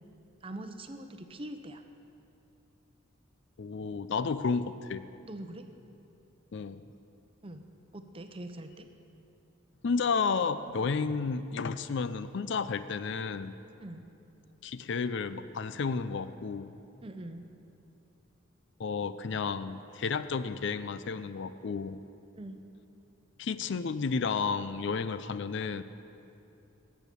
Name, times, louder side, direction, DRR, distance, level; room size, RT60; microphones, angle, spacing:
voice 1, 0.4-1.8 5.3-5.6 7.4-7.6 7.9-8.9 13.8-14.0 17.0-17.4 22.4-22.6, right 1 dB, 25° right, 7 dB, 0.7 m, -43 dB
voice 2, 3.6-5.0 6.5-6.8 9.8-13.5 14.6-16.7 18.8-22.0 23.4-25.8, left 5 dB, 60° left, 13 dB, 0.4 m, -32 dB
14.5 x 8.9 x 6.9 m, 2.8 s
head